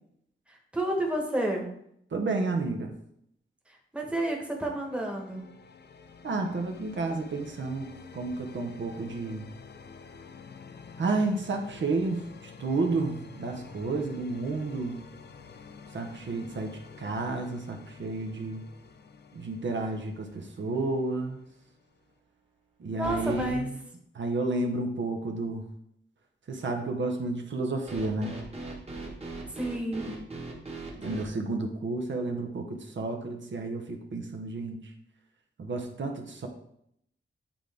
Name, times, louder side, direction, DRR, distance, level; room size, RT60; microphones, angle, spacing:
voice 1, 0.5-1.7 3.7-5.4 23.0-23.7 29.5-30.1, right 1 dB, 5° right, 0 dB, 1.2 m, -31 dB
voice 2, 2.1-2.9 6.2-7.9 8.1-9.5 11.0-15.0 15.9-18.6 19.3-21.4 22.8-23.7 24.1-25.6 26.5-28.4 31.0-34.9 35.6-36.5, right 3 dB, 65° right, 3 dB, 0.8 m, -31 dB
sound 1, 4.4-22.2, left 5 dB, 55° left, 0.5 m, -49 dB
sound 2, 20.0-20.4 20.7-20.8 23.0-23.6 27.9-31.3, right 2 dB, 30° right, 1.4 m, -39 dB
8.8 x 3.8 x 3.4 m, 0.73 s
wide cardioid pair, 130°, 20 cm